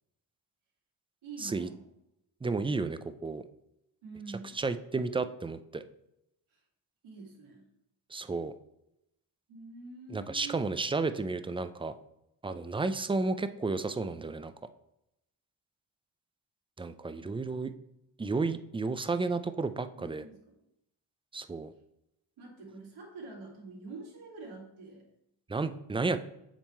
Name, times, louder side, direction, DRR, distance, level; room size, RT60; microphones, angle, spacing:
voice 1, 1.2-1.9 4.0-4.6 6.5-6.6 7.0-7.7 9.5-10.7 19.9-20.6 22.4-25.1, right 3 dB, 80° right, -2 dB, 2.3 m, -46 dB
voice 2, 2.4-3.4 4.6-5.8 8.1-8.5 10.1-11.9 12.4-14.5 16.8-17.7 18.2-20.2 21.3-21.7 25.5-26.2, right 3 dB, 10° right, 11 dB, 0.3 m, -32 dB
7.4 x 3.6 x 4.3 m, 0.84 s
cardioid pair, 65°, 48 cm